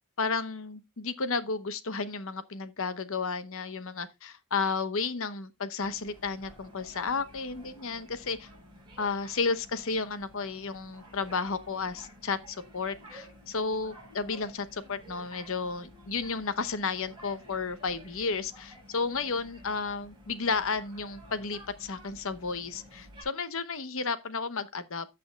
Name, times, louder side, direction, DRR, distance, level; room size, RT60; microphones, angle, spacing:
voice 1, 0.2-8.5 9.0-25.1, left 4 dB, 65° left, 0.9 m, -32 dB
sound 1, 5.8-23.2, equal, 20° right, 5.3 m, -52 dB
15.0 x 6.1 x 2.3 m
head